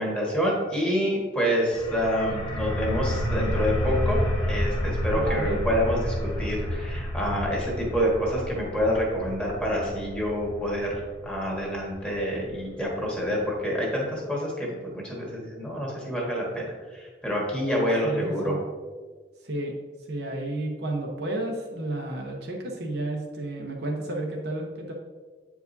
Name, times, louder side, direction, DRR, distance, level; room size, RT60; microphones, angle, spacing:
voice 1, 0.0-4.2 4.4-18.5, equal, 5° left, -3 dB, 1.6 m, -27 dB
sound 1, 1.7-13.2, equal, 25° left, 1.2 m, -30 dB
voice 2, 5.1-5.6 18.0-18.6 19.4-19.7 20.1-24.9, right 1 dB, 70° right, 0 dB, 1.0 m, -31 dB
8.0 x 4.8 x 2.7 m, 1.4 s
head